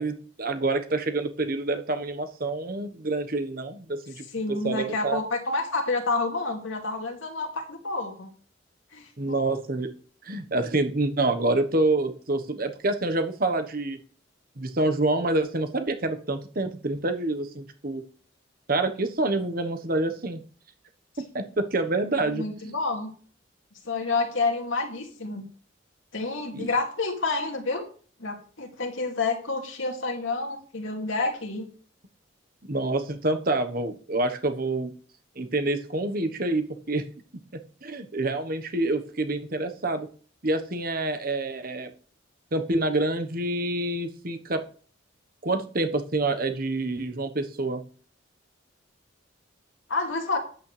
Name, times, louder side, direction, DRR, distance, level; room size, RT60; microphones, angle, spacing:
voice 1, 0.0-5.2 9.2-9.9 10.2-14.0 14.6-18.0 18.7-20.4 21.3-22.4 26.5-26.7 32.7-34.9 35.4-37.1 37.8-40.1 40.4-41.9 42.5-44.6 45.4-47.8, right 2 dB, 45° right, 8 dB, 1.2 m, -27 dB
voice 2, 4.3-8.3 8.9-9.3 22.2-23.1 23.8-25.5 26.1-27.8 28.2-31.7 49.9-50.4, left 3 dB, 80° left, 2 dB, 2.6 m, -29 dB
13.0 x 8.9 x 3.3 m, 0.42 s
head